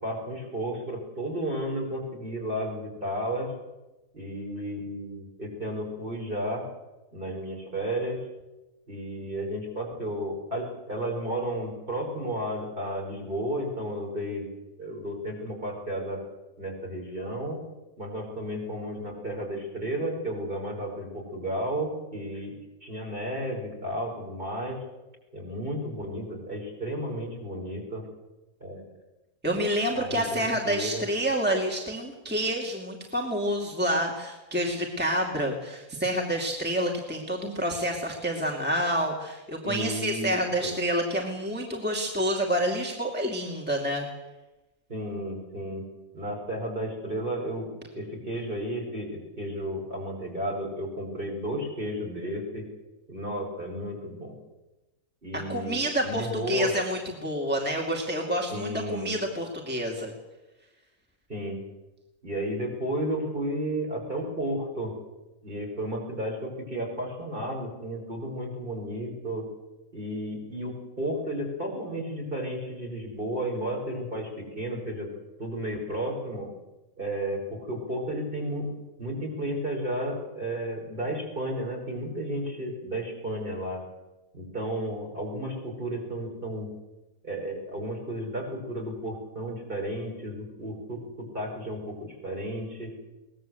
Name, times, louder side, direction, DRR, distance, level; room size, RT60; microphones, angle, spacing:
voice 1, 0.0-3.5 4.1-6.6 7.1-8.2 8.9-14.5 14.8-16.2 16.6-17.6 18.0-22.5 22.8-24.8 25.3-28.1 28.6-28.8 29.9-31.0 39.6-40.3 40.6-40.8 44.9-45.8 46.1-47.7 47.9-52.7 53.1-54.3 55.2-56.7 58.5-59.1 61.3-61.6 62.2-64.9 65.4-69.5 69.9-75.1 75.4-76.5 77.0-78.7 79.0-83.8 84.3-86.7 87.2-92.9, right 1 dB, 35° right, 0 dB, 5.6 m, -33 dB
voice 2, 29.4-44.1 55.3-60.1, equal, 5° right, 0 dB, 2.4 m, -28 dB
22.5 x 19.0 x 7.8 m, 1.1 s
omnidirectional pair, 1.5 m